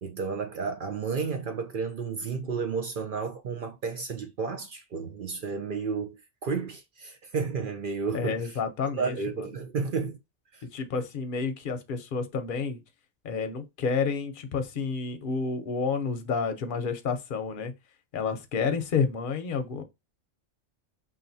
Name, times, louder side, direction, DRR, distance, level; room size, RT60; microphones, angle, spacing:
voice 1, 0.0-8.6 9.0-10.2 10.5-10.6, right 5 dB, 55° right, 0.6 m, -32 dB
voice 2, 8.1-9.5 10.7-12.8 13.2-17.7 18.1-19.8, left 5 dB, 50° left, 0.8 m, -30 dB
5.7 x 2.5 x 2.7 m
omnidirectional pair, 1.3 m